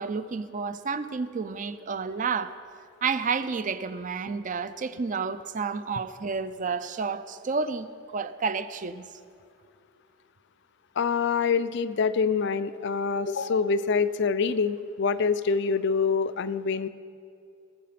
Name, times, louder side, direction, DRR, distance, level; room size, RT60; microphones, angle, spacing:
voice 1, 0.0-2.5 3.0-9.0, right 5 dB, 40° right, 12 dB, 0.5 m, -30 dB
voice 2, 11.0-16.9, left 5 dB, 65° left, 13 dB, 0.5 m, -25 dB
18.5 x 7.5 x 5.9 m, 2.5 s
head